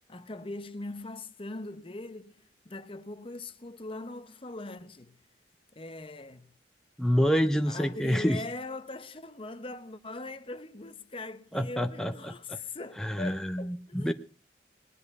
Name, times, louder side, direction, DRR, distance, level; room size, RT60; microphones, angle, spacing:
voice 1, 0.1-5.2 5.7-6.5 7.7-14.1, left 2 dB, 30° left, 0.8 m, -41 dB
voice 2, 7.0-8.4 11.5-12.6 13.0-14.1, equal, 5° left, 0.6 m, -27 dB
19.5 x 10.5 x 5.4 m
head